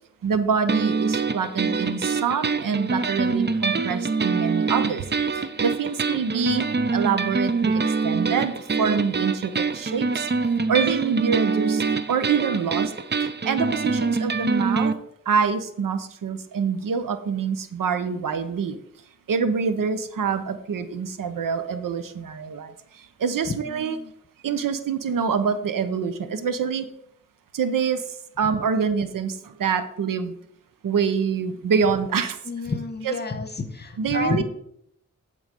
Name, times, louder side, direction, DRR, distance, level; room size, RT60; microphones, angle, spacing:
voice 1, 0.2-10.3 10.7-11.8 12.1-12.9 13.2-14.9 15.3-18.8 19.3-24.0 24.4-26.9 27.5-30.3 30.8-32.4 33.0-33.2 34.0-34.4, right 6 dB, 80° right, 11 dB, 0.8 m, -26 dB
sound 1, 0.7-14.9, right 4 dB, 35° right, 0.6 m, -25 dB
voice 2, 23.5-24.1 32.4-34.4, left 3 dB, 30° left, 8 dB, 1.3 m, -30 dB
10.5 x 3.9 x 5.1 m, 0.72 s
cardioid pair, 55°, 32 cm